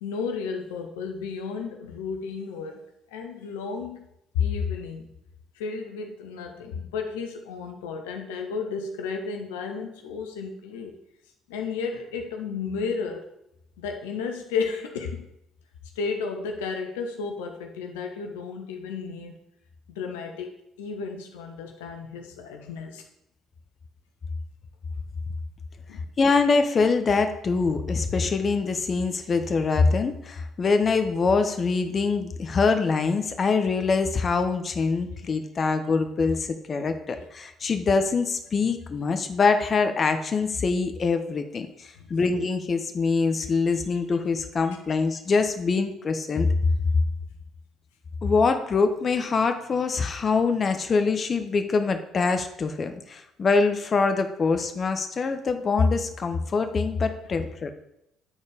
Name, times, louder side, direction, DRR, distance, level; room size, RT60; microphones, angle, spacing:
voice 1, 0.0-4.1 4.3-5.1 5.5-10.9 11.5-13.3 13.8-15.3 16.0-19.3 19.9-23.0 25.9-26.0 29.0-29.1 42.0-42.1, left 5 dB, 80° left, 4 dB, 0.8 m, -32 dB
voice 2, 26.2-46.5 48.2-57.7, left 4 dB, 40° left, 7 dB, 0.8 m, -24 dB
9.1 x 4.3 x 4.8 m, 0.81 s
hypercardioid pair, 55°, 0 cm